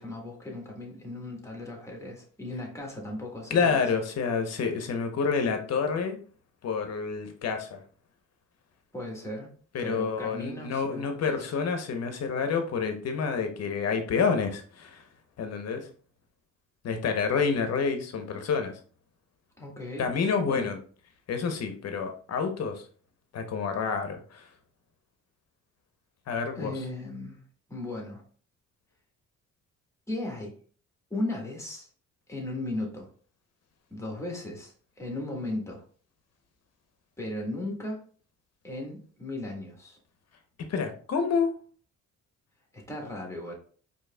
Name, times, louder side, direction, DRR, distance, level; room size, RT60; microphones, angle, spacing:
voice 1, 0.0-3.9 8.9-9.5 9.8-11.5 19.6-20.7 26.5-27.4 27.7-28.2 30.1-30.5 31.1-31.9 32.3-33.1 33.9-35.8 37.2-38.0 38.6-40.0 42.7-43.5, left 1 dB, 10° left, 0 dB, 1.4 m, -36 dB
voice 2, 3.5-6.2 6.6-7.8 9.7-15.0 15.4-15.8 16.8-18.7 20.0-20.8 21.3-22.8 23.3-24.4 26.3-26.7 40.7-41.5, left 5 dB, 60° left, 7 dB, 0.8 m, -28 dB
4.5 x 2.9 x 2.2 m, 0.43 s
cardioid pair, 90°, 30 cm